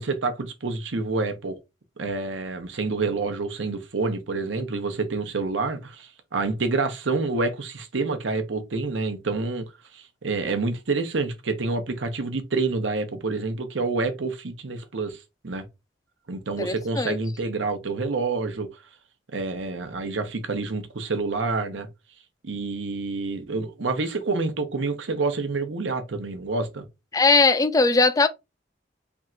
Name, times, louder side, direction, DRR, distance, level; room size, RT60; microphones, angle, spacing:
voice 1, 0.0-1.6 2.0-9.6 9.9-15.6 16.3-18.8 19.3-21.9 22.4-26.8, right 3 dB, 85° right, 0.8 m, -28 dB
voice 2, 16.6-17.2 27.1-28.3, left 3 dB, 20° left, 0.4 m, -19 dB
3.5 x 2.5 x 4.3 m
head